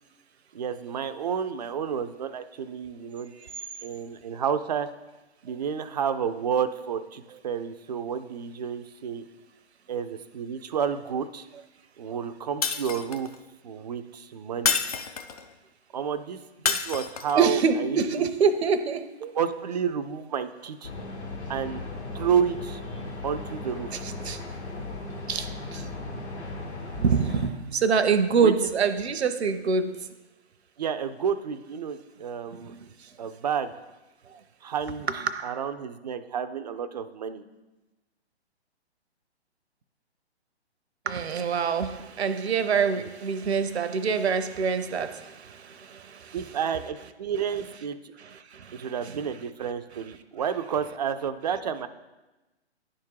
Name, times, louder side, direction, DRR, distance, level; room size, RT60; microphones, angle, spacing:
voice 1, 0.5-3.3 3.8-4.9 5.4-9.2 9.9-11.5 12.0-13.3 13.6-14.8 15.9-18.0 19.3-20.9 21.5-21.9 22.1-22.8 23.2-23.9 28.4-28.7 30.8-32.7 33.2-33.7 34.6-35.1 35.4-37.4 43.0-43.1 46.3-48.0 48.7-51.9, right 7 dB, 40° right, 10 dB, 0.4 m, -30 dB
Shatter, 12.6-13.3 14.6-15.5 16.7-17.4, left 6 dB, 35° left, 0.4 m, -28 dB
voice 2, 17.4-19.3 24.0-24.4 25.3-25.8 27.0-30.0 32.5-32.8 35.1-35.6 41.1-46.4 48.2-49.1, right 5 dB, 70° right, 10 dB, 0.7 m, -26 dB
sound 1, 20.8-27.5, left 2 dB, 75° left, 1.8 m, -37 dB
9.9 x 3.7 x 4.6 m, 1.1 s
figure-of-eight pair, 135°, 34 cm